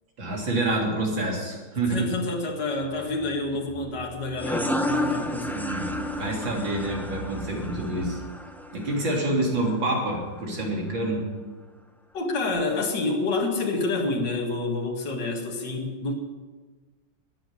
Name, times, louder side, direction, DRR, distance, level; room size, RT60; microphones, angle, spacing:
voice 1, 0.2-2.1 5.4-8.2 8.7-11.2, right 1 dB, 85° right, -1 dB, 4.1 m, -27 dB
voice 2, 1.9-5.5 12.1-16.1, left 3 dB, 65° left, 1 dB, 2.5 m, -28 dB
sound 1, 2.7-8.3, right 5 dB, 45° left, 2.4 m, -44 dB
sound 2, 4.4-9.7, left 1 dB, 5° left, 0.3 m, -31 dB
13.0 x 9.5 x 9.7 m, 1.4 s
omnidirectional pair, 2.1 m